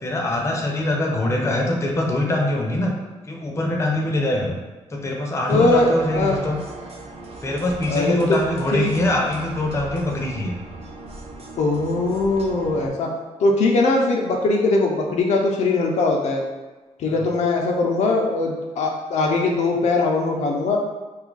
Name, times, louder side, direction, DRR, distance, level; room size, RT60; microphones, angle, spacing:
voice 1, 0.0-2.9 3.2-4.5 4.9-6.6 7.4-10.5 17.0-17.2, left 1 dB, 25° left, -1 dB, 0.5 m, -23 dB
voice 2, 5.5-6.4 7.9-8.4 8.7-8.9 11.6-13.1 13.4-16.4 17.0-20.8, left 3 dB, 75° left, 0 dB, 0.5 m, -20 dB
sound 1, 5.5-12.9, right 2 dB, 60° right, 0.5 m, -38 dB
2.6 x 2.4 x 3.8 m, 1.2 s
wide cardioid pair, 135°, 12 cm